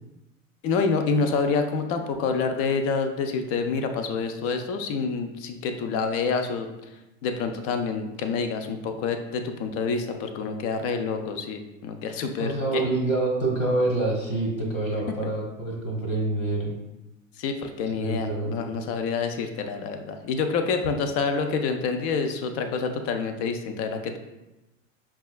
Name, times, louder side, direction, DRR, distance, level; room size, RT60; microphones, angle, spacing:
voice 1, 0.6-6.7 7.2-12.9 17.4-24.2, left 5 dB, 40° left, 6 dB, 0.4 m, -27 dB
voice 2, 12.4-16.7 18.0-18.9, right 2 dB, 85° left, -1 dB, 1.3 m, -26 dB
5.4 x 2.3 x 2.3 m, 0.97 s
hypercardioid pair, 85°, 40 cm